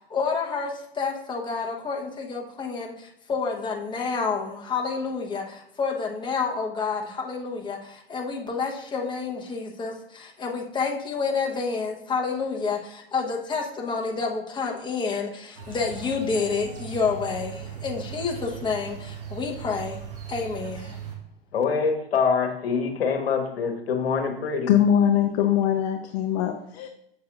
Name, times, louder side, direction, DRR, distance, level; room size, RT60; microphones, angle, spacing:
voice 1, 0.0-20.0 20.3-21.0, left 5 dB, 15° left, 1.1 m, -29 dB
sound 1, 15.6-21.2, right 7 dB, 60° right, 1.9 m, -38 dB
voice 2, 21.5-24.7, left 5 dB, 70° left, 1.2 m, -25 dB
voice 3, 24.7-26.9, left 9 dB, 40° left, 0.6 m, -22 dB
7.4 x 7.1 x 2.5 m
hypercardioid pair, 105°, 31 cm